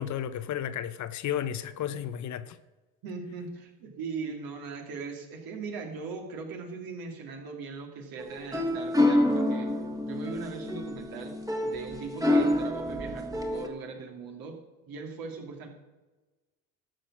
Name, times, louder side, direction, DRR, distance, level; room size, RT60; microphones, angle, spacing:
voice 1, 0.0-2.6, left 10 dB, 45° left, 0.8 m, -33 dB
voice 2, 3.0-9.7 10.0-11.3 11.6-14.6 14.9-15.7, right 4 dB, 65° right, 2.8 m, -39 dB
sound 1, 8.2-13.7, left 1 dB, 10° right, 1.7 m, -27 dB
12.5 x 6.7 x 6.2 m
supercardioid pair, 85°, 38 cm